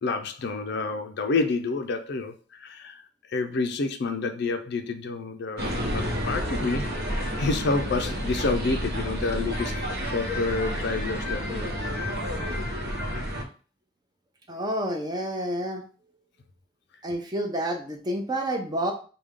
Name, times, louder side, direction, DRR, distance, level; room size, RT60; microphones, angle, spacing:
voice 1, 0.0-3.0 3.3-6.9 7.2-9.8 10.0-11.7, left 3 dB, 60° left, 0.5 m, -29 dB
sound 1, 5.6-13.4, equal, 55° right, 1.1 m, -30 dB
voice 2, 14.5-15.8 17.0-18.9, right 1 dB, 20° right, 0.7 m, -29 dB
4.9 x 2.2 x 3.6 m
head